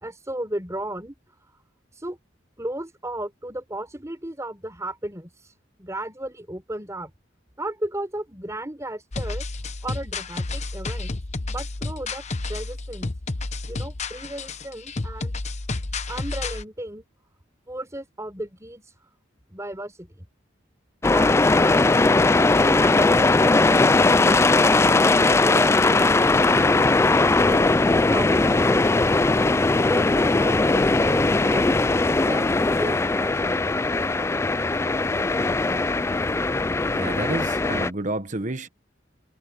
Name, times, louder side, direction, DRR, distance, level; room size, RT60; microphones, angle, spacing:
voice 1, 0.0-1.1 1.9-2.2 2.6-5.5 5.8-7.1 7.6-9.4 9.8-11.2 11.5-12.2 12.5-13.1 13.7-15.4 16.1-17.1 17.7-18.9 19.5-20.3 21.1-23.8 24.2-26.4 27.2-28.8 29.9-31.8 32.3-34.0, right 1 dB, 15° right, 4.1 m, -35 dB
sound 1, 9.1-16.6, left 3 dB, 35° left, 0.9 m, -31 dB
sound 2, 21.0-37.9, left 3 dB, 15° left, 0.3 m, -19 dB
voice 2, 36.9-38.7, right 2 dB, 40° right, 1.2 m, -29 dB
head